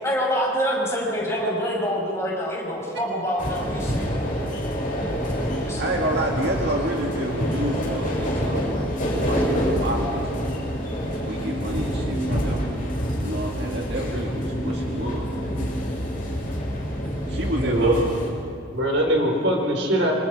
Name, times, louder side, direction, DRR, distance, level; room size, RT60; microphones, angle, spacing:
voice 1, 0.0-4.1 5.7-5.8, equal, 15° left, -3 dB, 5.8 m, -26 dB
sound 1, 3.4-18.3, equal, 45° left, 6.6 m, -27 dB
voice 2, 5.8-10.5 11.2-12.6 13.2-15.7 17.3-18.2, right 1 dB, 60° right, 0 dB, 2.1 m, -29 dB
voice 3, 17.5-17.9 18.7-20.1, right 1 dB, 85° right, 1 dB, 5.0 m, -22 dB
27.0 x 26.0 x 5.0 m, 2.4 s
head